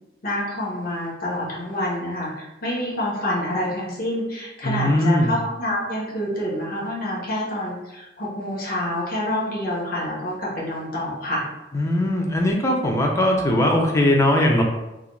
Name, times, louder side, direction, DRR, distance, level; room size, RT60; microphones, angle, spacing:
voice 1, 0.2-11.4, left 1 dB, 50° left, -5 dB, 0.8 m, -27 dB
voice 2, 4.6-5.3 11.7-14.6, left 1 dB, 15° left, 0 dB, 0.3 m, -20 dB
2.4 x 2.1 x 3.0 m, 0.98 s
head